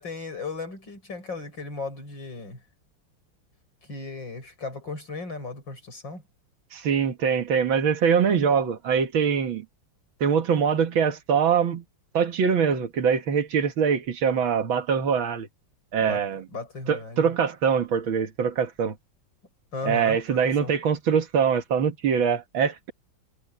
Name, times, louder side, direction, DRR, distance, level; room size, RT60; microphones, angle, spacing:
voice 1, 0.0-2.6 3.9-6.2 16.0-16.2 16.5-17.3 19.7-20.7, left 3 dB, 70° left, 8.4 m, -36 dB
voice 2, 6.7-9.7 10.2-11.8 12.1-15.5 15.9-16.5 16.9-18.9 19.8-22.9, right 7 dB, 80° right, 2.3 m, -23 dB
omnidirectional pair, 2.1 m